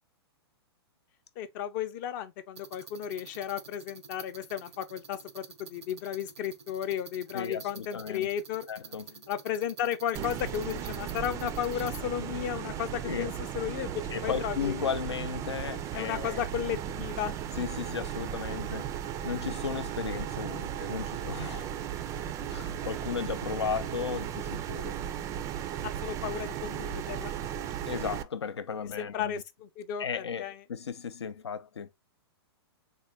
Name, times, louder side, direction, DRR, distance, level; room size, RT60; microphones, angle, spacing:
voice 1, 1.4-8.7 9.3-14.9 15.9-17.4 25.8-27.3 29.0-30.1 30.4-30.6, left 10 dB, 45° left, 0.6 m, -34 dB
sound 1, 2.5-12.0, right 6 dB, 80° right, 0.6 m, -49 dB
voice 2, 7.3-8.3 8.7-9.2 13.1-13.3 14.1-16.4 17.6-18.9 19.2-21.7 22.5-25.0 27.9-29.4 30.0-31.9, left 6 dB, 90° left, 0.5 m, -35 dB
sound 2, 10.1-28.2, right 9 dB, 20° right, 0.3 m, -36 dB
3.8 x 2.1 x 3.3 m
hypercardioid pair, 120°, 14 cm